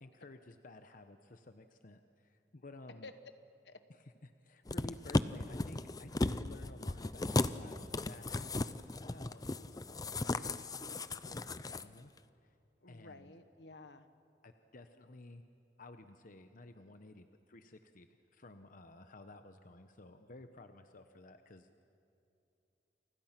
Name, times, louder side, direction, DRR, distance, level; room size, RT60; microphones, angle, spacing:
voice 1, 0.0-3.1 4.2-8.6 9.0-12.1 12.4-12.6 12.9-13.3 14.4-15.4 15.8-21.8, left 2 dB, 50° left, 8 dB, 0.9 m, -54 dB
sound 1, 4.7-11.8 12.2-12.3, left 2 dB, 20° left, 0.6 m, -36 dB
voice 2, 12.8-14.1, left 3 dB, 75° left, 10 dB, 1.3 m, -52 dB
29.5 x 25.0 x 6.0 m, 2.7 s
head